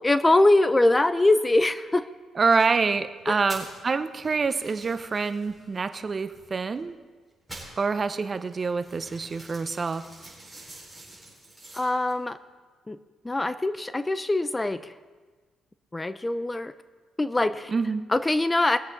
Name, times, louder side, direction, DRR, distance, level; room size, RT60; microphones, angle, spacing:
voice 1, 0.0-2.1 3.3-3.4 11.7-12.4 12.9-13.0 13.2-14.9 15.9-16.7 17.2-17.7 18.1-18.8, left 2 dB, 15° left, 13 dB, 0.5 m, -23 dB
voice 2, 2.3-7.0 7.8-10.1 17.7-18.0, right 4 dB, 35° right, 11 dB, 0.7 m, -26 dB
sound 1, 2.4-2.7 3.3-3.8 4.1-6.9 7.3-12.1, right 2 dB, 5° right, 4.7 m, -46 dB
21.0 x 8.0 x 4.0 m, 1.4 s
cardioid pair, 90°, 0 cm